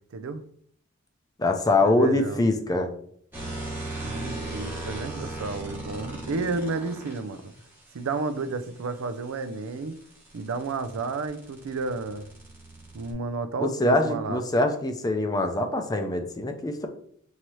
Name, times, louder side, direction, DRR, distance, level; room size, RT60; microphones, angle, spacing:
voice 1, 0.1-0.4 1.7-2.4 4.0-7.4 7.9-9.9 10.3-12.3 12.9-14.4, right 3 dB, 85° right, 10 dB, 0.4 m, -32 dB
voice 2, 1.4-2.9 13.6-16.9, left 2 dB, 20° left, 5 dB, 0.4 m, -24 dB
sound 1, 3.3-7.2 9.5-13.1, right 2 dB, 10° right, 1.0 m, -37 dB
5.9 x 2.7 x 3.1 m, 0.64 s
head